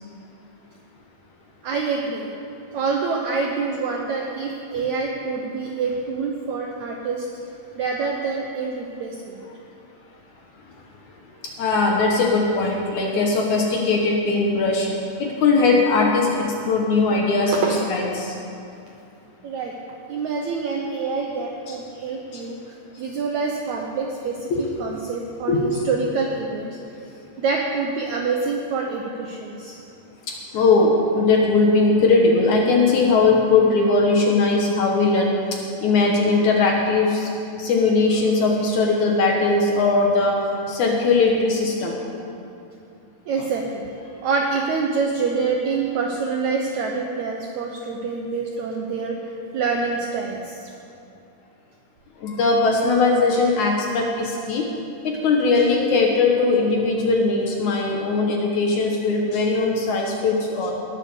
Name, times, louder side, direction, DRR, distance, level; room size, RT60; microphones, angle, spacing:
voice 1, 1.6-2.3 2.7-7.3 7.7-9.4 17.5-17.9 19.4-19.7 20.1-22.6 23.0-26.8 27.4-29.7 43.3-43.9 44.2-49.2 49.5-50.7, right 4 dB, 75° right, 1 dB, 1.7 m, -26 dB
voice 2, 11.4-14.9 15.2-18.4 21.7-21.8 22.3-22.4 24.5-24.7 25.5-25.8 30.3-37.3 37.6-42.0 52.2-54.7 55.0-60.7, left 3 dB, 65° left, 0 dB, 2.1 m, -20 dB
19.5 x 7.4 x 6.6 m, 2.6 s
omnidirectional pair, 4.4 m